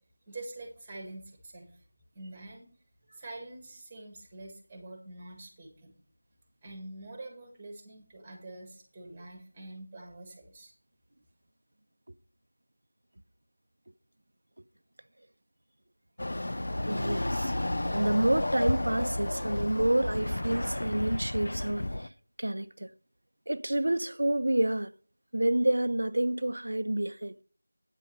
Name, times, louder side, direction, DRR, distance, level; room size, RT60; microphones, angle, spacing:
voice 1, 0.3-1.8 2.1-2.7 3.1-5.9 6.6-10.7, right 2 dB, 10° right, 1.8 m, -45 dB
Chatter / Car passing by / Motorcycle, 16.2-22.1, left 1 dB, 65° left, 0.5 m, -32 dB
voice 2, 16.9-17.5 17.9-22.1 22.4-22.9 23.5-24.9 25.3-27.3, right 1 dB, 75° right, 0.6 m, -28 dB
9.1 x 5.3 x 6.6 m
figure-of-eight pair, 175°, 0 cm